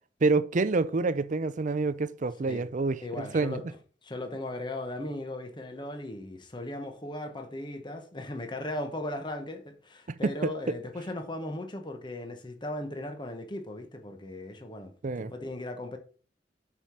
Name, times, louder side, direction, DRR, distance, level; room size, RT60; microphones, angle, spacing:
voice 1, 0.2-3.6 10.1-10.5 15.0-15.3, right 3 dB, 45° right, 0.5 m, -27 dB
voice 2, 3.0-3.6 4.0-16.0, left 1 dB, 25° left, 1.1 m, -37 dB
7.4 x 4.9 x 5.7 m
head